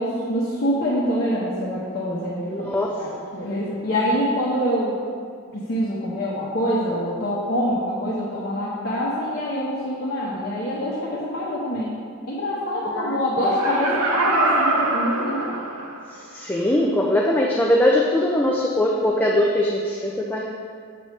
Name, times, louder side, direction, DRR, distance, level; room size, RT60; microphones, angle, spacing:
voice 1, 0.0-5.0 5.5-11.9 12.2-15.5, equal, 45° left, -7 dB, 1.1 m, -25 dB
voice 2, 2.5-3.2 12.9-13.2 16.1-20.4, left 1 dB, 10° left, -3 dB, 0.4 m, -21 dB
Laughter, 13.4-16.1 16.6-16.7, right 2 dB, 85° right, 0.8 m, -24 dB
7.9 x 6.9 x 3.2 m, 2.1 s
head